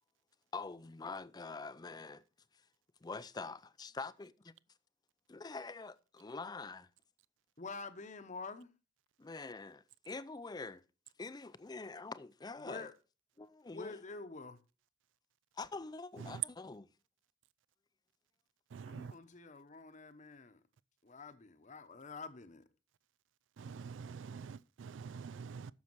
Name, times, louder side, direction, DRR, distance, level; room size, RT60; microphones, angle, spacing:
voice 1, 0.5-2.2 3.0-4.3 5.3-6.9 9.2-10.8 11.2-12.9 13.4-14.0 15.6-16.8, left 3 dB, 20° left, 0.4 m, -45 dB
voice 2, 7.6-8.7 12.6-12.9 13.7-14.6 18.9-20.6 21.0-22.6, left 4 dB, 40° left, 0.9 m, -47 dB
voice 3, 18.7-19.2 23.6-25.7, right 8 dB, 75° right, 0.4 m, -44 dB
9.6 x 7.0 x 4.6 m
head